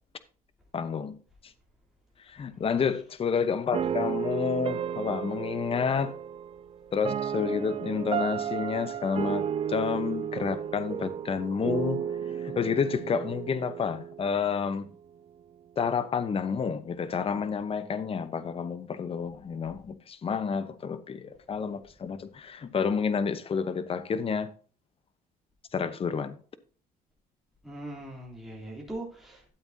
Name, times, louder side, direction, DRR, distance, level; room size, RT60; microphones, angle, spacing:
voice 1, 0.7-1.2 2.3-6.1 6.9-12.0 12.4-14.9 15.8-24.5 25.7-26.4, left 6 dB, 35° left, 0.9 m, -30 dB
voice 2, 2.9-3.4 3.8-4.1 27.6-29.4, right 1 dB, ahead, 3.1 m, -41 dB
sound 1, 3.7-14.8, right 8 dB, 35° right, 0.4 m, -33 dB
12.5 x 8.0 x 2.7 m
cardioid pair, 110°, 17 cm